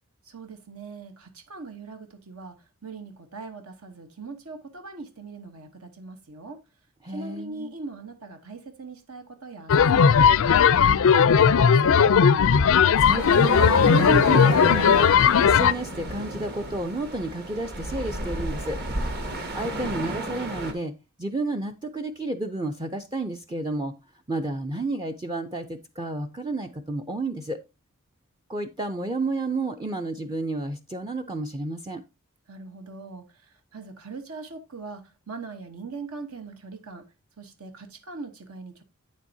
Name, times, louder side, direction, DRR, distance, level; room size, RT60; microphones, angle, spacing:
voice 1, 0.2-6.6 7.1-12.2 32.5-37.1 37.4-38.8, right 3 dB, 70° right, 1.1 m, -41 dB
voice 2, 7.0-7.7 13.0-15.1 15.4-18.8 19.5-20.9 21.2-23.9 24.3-27.6 28.5-32.0, right 2 dB, 20° right, 0.5 m, -31 dB
sound 1, 9.7-15.7, left 7 dB, 65° left, 0.4 m, -17 dB
sound 2, 13.2-20.7, right 1 dB, 45° right, 1.5 m, -32 dB
8.9 x 7.4 x 2.7 m
head